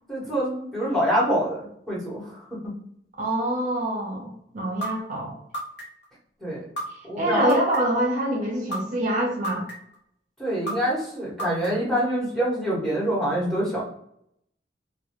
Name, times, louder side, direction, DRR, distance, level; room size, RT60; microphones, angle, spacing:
voice 1, 0.1-2.7 6.4-6.6 7.0-7.6 10.4-13.8, equal, ahead, -6 dB, 0.9 m, -26 dB
voice 2, 3.2-5.3 7.2-9.6, right 1 dB, 45° right, -1 dB, 0.6 m, -25 dB
sound 1, 4.8-4.9 5.5-6.1 6.8-6.9 7.5-8.0 8.7-8.8 9.4-10.0 10.7-10.8 11.4-11.9, equal, 80° left, 0.8 m, -30 dB
2.2 x 2.1 x 2.8 m, 0.73 s
head